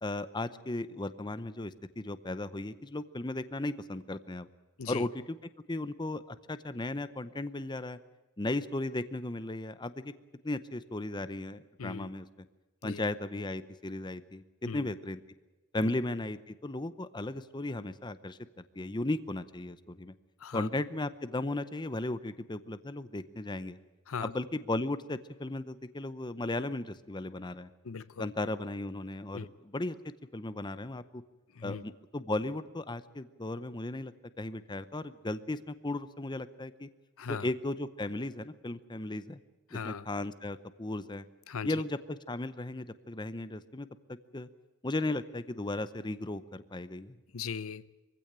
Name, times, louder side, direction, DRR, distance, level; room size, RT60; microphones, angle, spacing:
voice 1, 0.0-4.5 4.9-5.4 5.7-8.0 8.4-10.1 10.4-12.3 12.8-15.2 15.7-18.4 18.7-20.1 20.5-23.8 24.2-27.7 28.2-31.2 31.6-36.9 37.3-39.4 39.7-41.2 41.6-43.9 44.3-44.5 44.8-47.1, left 2 dB, 20° left, 0.7 m, -36 dB
voice 2, 11.8-12.1 12.8-13.1 14.7-14.9 20.4-20.7 24.1-24.3 27.8-28.3 29.3-29.5 31.6-31.8 37.2-37.5 39.7-40.1 41.5-41.7 47.3-48.0, left 6 dB, 70° left, 0.7 m, -39 dB
23.5 x 15.5 x 9.0 m
head